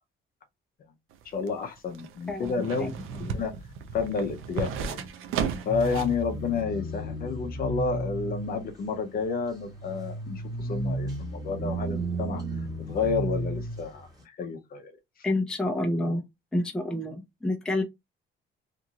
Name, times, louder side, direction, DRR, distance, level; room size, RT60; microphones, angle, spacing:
sound 1, 1.1-6.2 6.6-6.7, right 6 dB, 80° right, 0.6 m, -34 dB
voice 1, 1.2-2.9 3.2-3.5 3.9-5.0 5.7-12.4 12.9-14.9, left 5 dB, 45° left, 0.6 m, -30 dB
voice 2, 2.3-3.2 15.2-16.2 16.5-17.8, left 1 dB, 5° left, 0.5 m, -29 dB
sound 2, 5.7-14.0, right 1 dB, 20° right, 1.1 m, -34 dB
2.9 x 2.4 x 2.8 m
cardioid pair, 145°, 21 cm